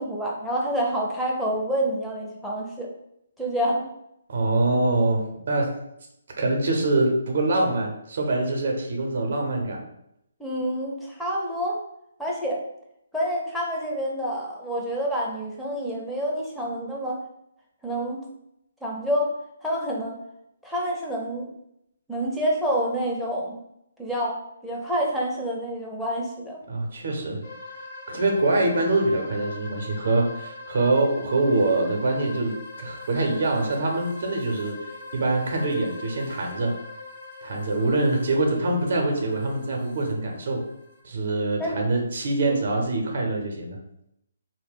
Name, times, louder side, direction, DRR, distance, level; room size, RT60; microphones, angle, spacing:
voice 1, 0.0-2.9 3.4-3.9 10.4-11.8 12.2-12.6 13.1-17.2 17.8-18.2 18.8-19.3 19.6-20.2 20.6-21.5 22.1-23.6 24.0-26.6 41.6-41.8 42.5-42.6, equal, ahead, -4 dB, 0.6 m, -28 dB
voice 2, 4.3-5.8 6.4-9.8 26.7-27.4 28.1-34.8 35.1-36.8 37.4-40.6 41.0-43.8, right 2 dB, 55° right, 1 dB, 0.6 m, -24 dB
sound 1, 27.4-41.0, left 2 dB, 45° left, 0.9 m, -42 dB
2.2 x 2.0 x 3.5 m, 0.79 s
figure-of-eight pair, 140°, 0 cm